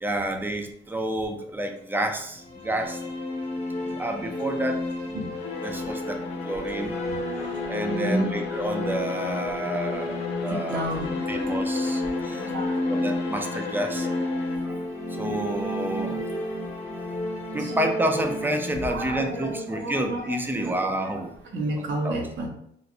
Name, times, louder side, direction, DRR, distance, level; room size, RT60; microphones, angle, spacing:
voice 1, 0.0-3.0 4.0-4.8 5.6-10.9 11.3-12.5 12.9-14.1 14.6-14.8 15.2-16.2 17.5-21.3 21.8-22.2, right 1 dB, 10° right, 4 dB, 0.4 m, -30 dB
sound 1, 2.4-20.3, left 2 dB, 30° left, 0.9 m, -31 dB
Bowed string instrument, 5.3-14.8, left 4 dB, 65° left, 0.5 m, -39 dB
voice 2, 7.1-8.3 10.5-11.5 12.2-12.8 17.6-17.8 18.8-21.2 21.5-22.5, right 1 dB, 65° right, 1 dB, 0.8 m, -32 dB
3.2 x 2.5 x 2.5 m, 0.71 s
cardioid pair, 90°, 20 cm